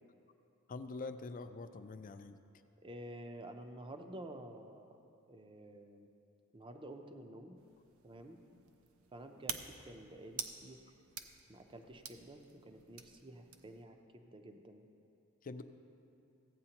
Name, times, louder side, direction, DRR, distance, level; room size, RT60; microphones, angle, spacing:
voice 1, 0.7-2.4 15.4-15.6, left 3 dB, 40° left, 10 dB, 0.4 m, -45 dB
voice 2, 2.8-5.0 5.3-6.1 6.5-7.6 8.0-8.4 9.1-10.8 11.5-14.8, right 1 dB, 25° right, 5 dB, 0.6 m, -50 dB
sound 1, 7.6-13.9, right 7 dB, 70° right, 0.6 m, -49 dB
15.0 x 8.6 x 2.9 m, 2.6 s
head